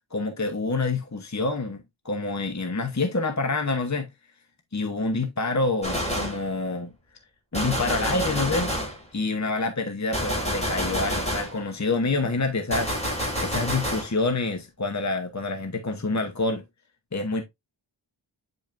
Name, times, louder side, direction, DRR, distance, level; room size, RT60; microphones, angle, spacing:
voice 1, 0.1-4.1 4.7-6.9 7.5-8.7 9.1-13.0 13.4-16.6 17.1-17.4, left 3 dB, 35° left, 1.0 m, -27 dB
Gunshot gunfire, 5.8-6.5 7.5-9.0 10.1-11.6 12.7-14.1, equal, 15° left, 5.5 m, -28 dB
8.8 x 5.4 x 2.6 m
wide cardioid pair, 45°, 48 cm